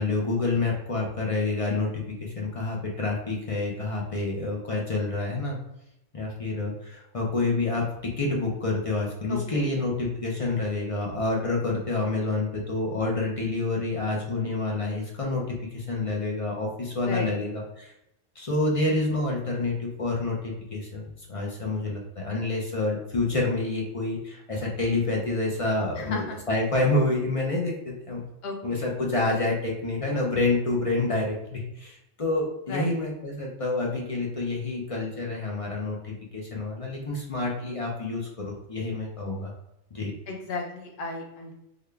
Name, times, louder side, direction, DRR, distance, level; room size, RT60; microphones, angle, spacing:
voice 1, 0.0-5.6 6.1-17.9 18.4-21.0 21.3-28.2 28.6-39.5 39.9-40.1, left 2 dB, 40° left, -1 dB, 0.5 m, -28 dB
voice 2, 9.3-9.7 17.0-17.3 26.0-26.4 28.4-28.9 32.7-33.0 40.3-41.5, left 3 dB, 55° left, 0 dB, 1.0 m, -34 dB
3.7 x 2.2 x 3.3 m, 0.85 s
omnidirectional pair, 1.3 m